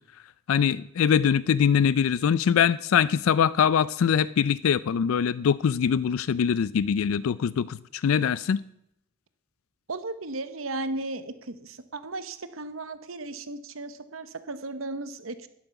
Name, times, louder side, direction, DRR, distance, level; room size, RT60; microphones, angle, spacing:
voice 1, 0.5-8.6, left 7 dB, 80° left, 0.4 m, -23 dB
voice 2, 9.9-15.5, right 2 dB, 80° right, 1.0 m, -35 dB
12.5 x 10.5 x 5.8 m
head